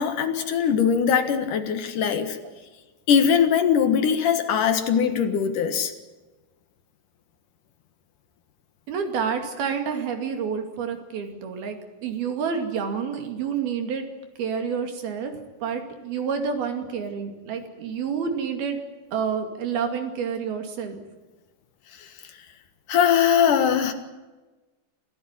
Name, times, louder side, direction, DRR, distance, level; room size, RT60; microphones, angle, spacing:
voice 1, 0.0-2.4 3.1-5.9 22.0-22.1 22.9-23.9, left 7 dB, 60° left, 8 dB, 2.6 m, -21 dB
voice 2, 8.9-14.1 14.4-15.3 15.6-18.8 19.1-21.0, right 6 dB, 65° right, 5 dB, 4.2 m, -29 dB
27.0 x 15.5 x 9.8 m, 1.2 s
omnidirectional pair, 4.8 m